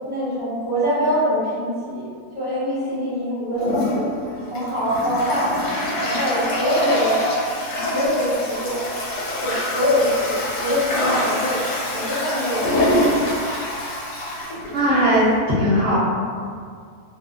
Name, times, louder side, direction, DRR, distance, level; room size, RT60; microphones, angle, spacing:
voice 1, 0.0-2.1 2.3-4.1 4.4-5.5 6.0-7.2 7.8-8.8 9.4-13.2, equal, 60° right, -12 dB, 1.4 m, -24 dB
Toilet flush, 3.6-15.4, left 1 dB, 70° left, 1.1 m, -25 dB
voice 2, 14.7-15.3 15.6-16.0, equal, 40° right, -12 dB, 0.9 m, -18 dB
2.9 x 2.1 x 2.4 m, 2.2 s
omnidirectional pair, 1.7 m